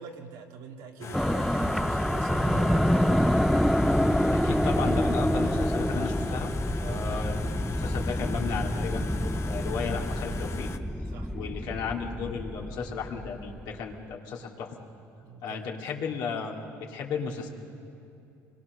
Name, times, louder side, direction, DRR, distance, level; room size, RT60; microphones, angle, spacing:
voice 1, 0.0-3.3 4.5-4.8 6.8-7.3 11.1-11.3 14.3-14.6 15.2-15.6, right 6 dB, 80° right, 2 dB, 2.0 m, -44 dB
sound 1, 1.0-10.8, left 5 dB, 40° left, 1.0 m, -40 dB
sound 2, 1.1-13.7, equal, ahead, 0.4 m, -27 dB
voice 2, 4.3-6.5 6.9-7.4 7.8-10.7 11.3-14.8 15.4-17.5, left 6 dB, 70° left, -1 dB, 2.5 m, -34 dB
24.5 x 21.5 x 6.5 m, 2.7 s
cardioid pair, 110°, 7 cm